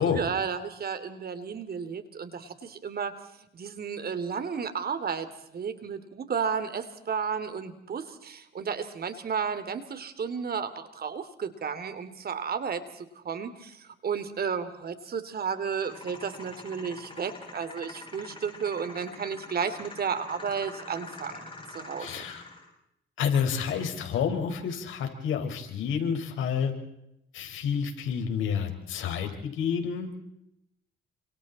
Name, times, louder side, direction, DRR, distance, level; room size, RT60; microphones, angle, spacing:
voice 1, 0.0-3.1 3.5-21.4 21.7-22.2, right 6 dB, 50° right, 11 dB, 3.0 m, -33 dB
sound 1, 15.7-22.7, left 3 dB, 25° left, 7.3 m, -45 dB
voice 2, 22.0-22.4 23.2-26.7 27.3-30.1, left 7 dB, 80° left, 4 dB, 5.2 m, -29 dB
29.5 x 26.5 x 4.3 m, 0.80 s
cardioid pair, 90°, 20 cm